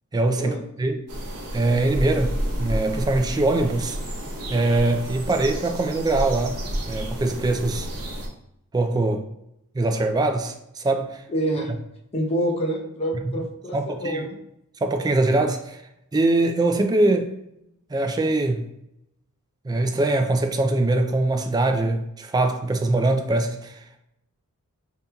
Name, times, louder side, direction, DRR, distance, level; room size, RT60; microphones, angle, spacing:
voice 1, 0.1-1.1 1.5-4.0 4.5-7.9 8.7-9.2 9.7-11.2 13.2-13.3 13.7-14.3 14.8-15.8 16.1-17.3 17.9-18.7 19.6-24.0, right 2 dB, 20° right, 0.3 m, -23 dB
sound 1, 1.1-8.3, equal, 85° right, 0.9 m, -30 dB
voice 2, 11.3-11.7 12.1-14.4, right 1 dB, 25° left, 0.6 m, -27 dB
5.1 x 2.8 x 2.2 m
head